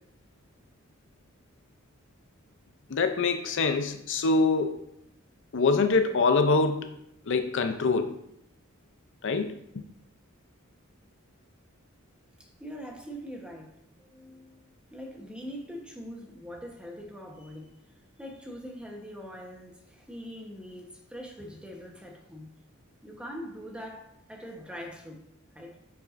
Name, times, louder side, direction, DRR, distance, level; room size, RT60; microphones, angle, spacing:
voice 1, 2.9-4.8 5.5-7.0 7.3-8.2 9.2-9.8, left 4 dB, 60° left, 0.5 m, -25 dB
voice 2, 12.4-17.8 18.2-22.5 23.0-25.2 25.5-25.8, equal, 5° right, 1.1 m, -43 dB
9.0 x 5.5 x 2.6 m
head